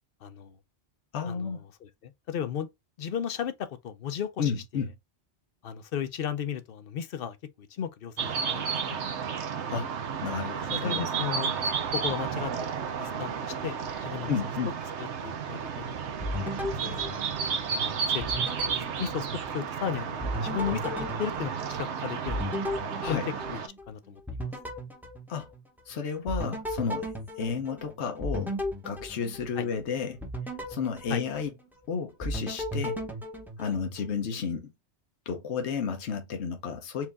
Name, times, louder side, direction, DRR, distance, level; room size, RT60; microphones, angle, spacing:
voice 1, 0.2-0.5 1.3-1.5 2.0-2.7 3.0-4.6 5.6-9.0 10.8-11.5 11.9-13.7 14.0-14.4 15.0-15.9 16.6-17.2 17.8-18.2 19.0-19.3 19.5-22.6 23.1-23.2 23.5-23.6 23.9-24.2 29.6-29.7 31.1-31.2, left 8 dB, 60° left, 0.8 m, -35 dB
voice 2, 1.1-1.6 4.4-4.9 9.7-9.9 10.2-11.1 14.3-14.7 23.0-23.3 25.3-25.5 25.9-28.5 28.8-30.2 30.7-31.5 31.9-33.0 33.6-34.7 35.3-37.1, left 6 dB, 80° left, 1.1 m, -32 dB
sound 1, 8.2-23.7, right 6 dB, 85° right, 1.1 m, -32 dB
sound 2, 16.2-17.8 18.2-19.8 20.2-23.9 24.3-25.9 26.3-29.7 30.2-31.8 32.2-34.2, equal, ahead, 0.8 m, -36 dB
4.6 x 2.5 x 3.4 m
omnidirectional pair, 1.1 m